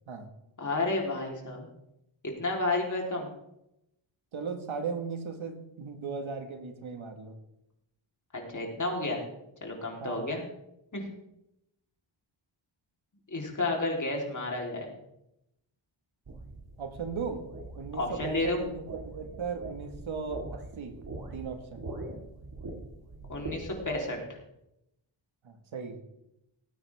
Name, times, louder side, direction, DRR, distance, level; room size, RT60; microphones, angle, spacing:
voice 1, 0.6-1.7 2.4-3.3 8.3-9.2 9.6-10.4 10.9-11.1 13.3-14.9 18.0-18.6 23.3-24.2, left 2 dB, 40° left, 0 dB, 3.7 m, -31 dB
voice 2, 4.3-7.4 10.0-10.3 16.8-17.5 17.8-21.0 21.3-21.8 25.4-26.0, right 5 dB, 75° right, 5 dB, 1.8 m, -37 dB
sound 1, 16.3-24.0, right 2 dB, 50° right, 2.4 m, -43 dB
18.5 x 9.3 x 3.6 m, 0.83 s
wide cardioid pair, 85°, 48 cm